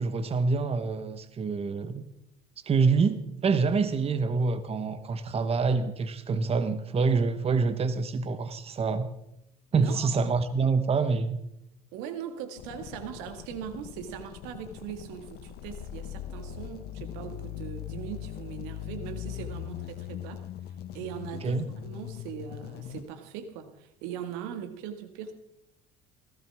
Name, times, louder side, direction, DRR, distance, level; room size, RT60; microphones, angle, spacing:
voice 1, 0.0-2.1 2.6-9.1 9.7-11.4 21.4-21.6, right 4 dB, 30° right, 11 dB, 1.2 m, -26 dB
voice 2, 9.8-10.1 11.9-20.4 20.9-25.3, right 9 dB, 70° right, 8 dB, 1.9 m, -40 dB
sound 1, 12.6-23.1, left 11 dB, 55° left, 0.9 m, -40 dB
18.0 x 16.0 x 3.6 m, 0.81 s
hypercardioid pair, 70°, 19 cm